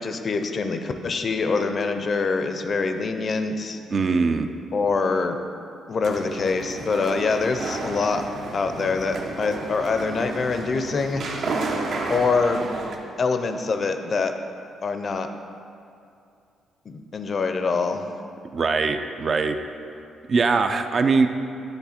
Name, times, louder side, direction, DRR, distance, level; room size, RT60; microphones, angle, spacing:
voice 1, 0.0-3.8 4.7-5.4 5.9-8.2 8.5-11.2 12.1-12.7 13.2-14.3 14.8-15.3 16.9-18.1, left 4 dB, 45° left, 7 dB, 0.5 m, -24 dB
voice 2, 3.9-4.5 18.5-19.6 20.3-21.3, right 4 dB, 45° right, 7 dB, 0.4 m, -21 dB
sound 1, 6.0-13.0, right 3 dB, 65° right, 0.8 m, -32 dB
9.8 x 3.4 x 4.2 m, 2.5 s
cardioid pair, 90°, 0 cm